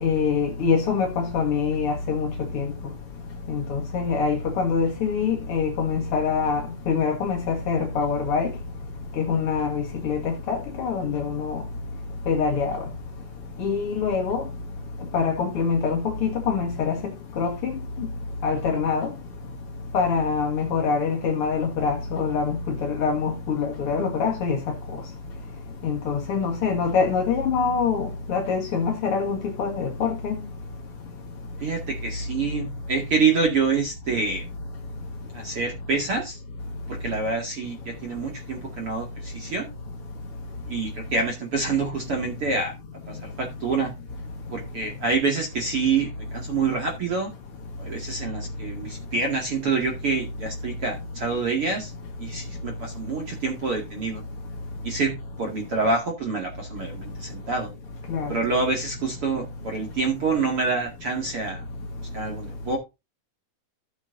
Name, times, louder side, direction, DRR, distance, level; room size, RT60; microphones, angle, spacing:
voice 1, 0.0-2.3 2.5-2.7 3.5-8.5 9.2-11.6 12.3-12.8 13.6-14.4 15.1-17.0 17.4-17.7 18.4-19.1 19.9-22.6 22.8-24.6 25.8-30.3 58.1-58.3, left 5 dB, 55° left, 1.6 m, -24 dB
voice 2, 31.6-34.4 35.3-36.4 36.9-39.7 40.7-42.7 43.1-43.9 44.5-47.3 47.8-51.9 52.2-54.2 54.8-57.7 58.3-61.6 62.1-62.8, right 4 dB, 40° right, 2.4 m, -27 dB
14.5 x 7.3 x 2.6 m
omnidirectional pair, 4.7 m